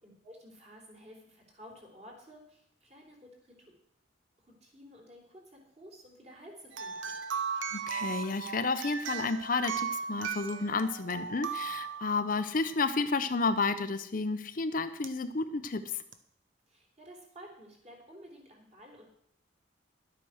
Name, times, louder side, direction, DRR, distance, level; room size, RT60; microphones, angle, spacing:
voice 1, 0.0-3.7 4.4-7.1 16.7-19.0, equal, 35° right, 0 dB, 3.6 m, -53 dB
sound 1, 6.7-12.7 15.0-15.1 16.1-16.2, right 6 dB, 90° right, 1.1 m, -37 dB
voice 2, 7.7-16.0, left 4 dB, 45° left, 10 dB, 0.6 m, -31 dB
11.5 x 8.6 x 6.3 m, 0.70 s
head